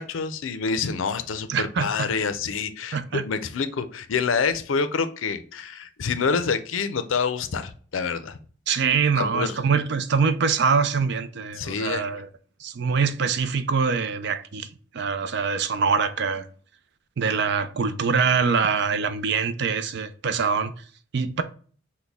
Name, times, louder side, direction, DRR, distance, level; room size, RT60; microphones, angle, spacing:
voice 1, 0.0-8.4 9.2-9.6 11.6-12.0, left 5 dB, 90° left, 0.5 m, -27 dB
voice 2, 1.5-2.1 2.9-3.3 8.7-12.3 12.6-14.7 14.9-16.4 17.2-20.7 21.1-21.4, right 5 dB, 60° right, 0.4 m, -24 dB
6.0 x 2.2 x 3.4 m
head